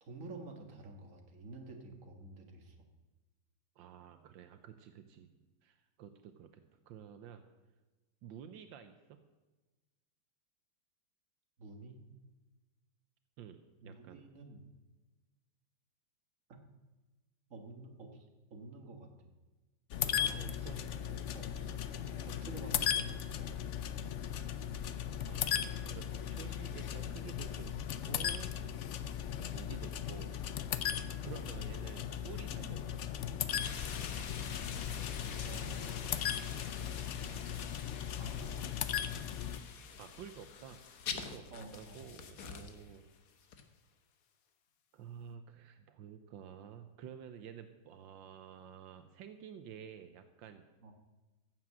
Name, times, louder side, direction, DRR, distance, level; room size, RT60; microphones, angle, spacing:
voice 1, 0.0-2.9 11.6-12.0 13.8-14.6 16.5-16.6 17.5-19.3 20.2-21.8 22.2-23.5 31.5-31.7 35.4-36.4 38.2-38.6 41.5-42.1 50.8-50.9, right 2 dB, 45° right, 3 dB, 2.0 m, -50 dB
voice 2, 3.8-7.4 8.2-9.2 13.4-14.3 20.2-20.8 25.2-27.8 28.0-28.5 29.4-30.3 31.2-33.0 40.0-40.8 41.1-41.4 41.7-43.1 44.9-50.7, right 8 dB, 80° right, 9 dB, 1.5 m, -51 dB
sound 1, 19.9-39.6, left 9 dB, 70° left, 0.7 m, -37 dB
sound 2, 33.6-43.0 43.5-43.6, left 6 dB, 55° left, 1.3 m, -45 dB
15.0 x 7.6 x 7.5 m, 1.2 s
omnidirectional pair, 2.1 m